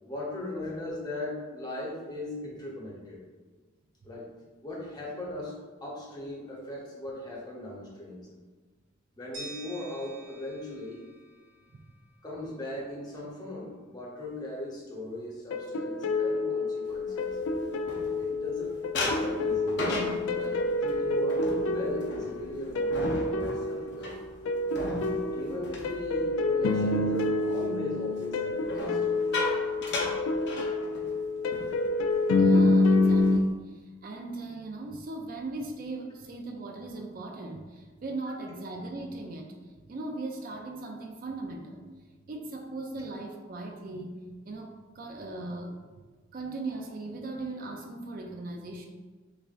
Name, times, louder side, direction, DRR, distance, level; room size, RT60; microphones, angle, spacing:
voice 1, 0.1-3.2 4.0-4.3 4.6-8.3 9.1-11.1 12.2-17.4 18.2-24.2 25.3-29.0, left 1 dB, 20° left, -4 dB, 0.9 m, -38 dB
sound 1, 9.3-12.3, right 3 dB, 80° right, 1.3 m, -47 dB
sound 2, 15.5-33.4, left 2 dB, 90° left, 0.3 m, -28 dB
sound 3, 17.1-18.5 18.9-26.8 27.1-27.5 28.6-31.2 31.5-31.7 32.0-32.3 32.8-33.5, left 2 dB, 60° left, 0.7 m, -36 dB
voice 2, 32.3-41.8 42.3-45.8 46.3-48.9, right 2 dB, 45° right, 3 dB, 0.4 m, -39 dB
6.3 x 2.5 x 2.4 m, 1.3 s
head